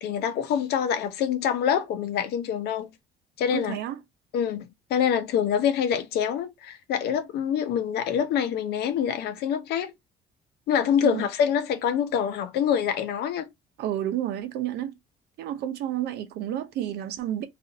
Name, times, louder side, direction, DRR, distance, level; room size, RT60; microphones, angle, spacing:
voice 1, 0.0-2.9 3.4-3.8 4.3-9.9 10.7-13.5, left 8 dB, 75° left, 0.7 m, -26 dB
voice 2, 3.5-4.0 11.0-11.3 13.8-14.9 15.4-17.5, right 11 dB, 80° right, 0.7 m, -30 dB
2.5 x 2.5 x 3.8 m
cardioid pair, 110°, 17 cm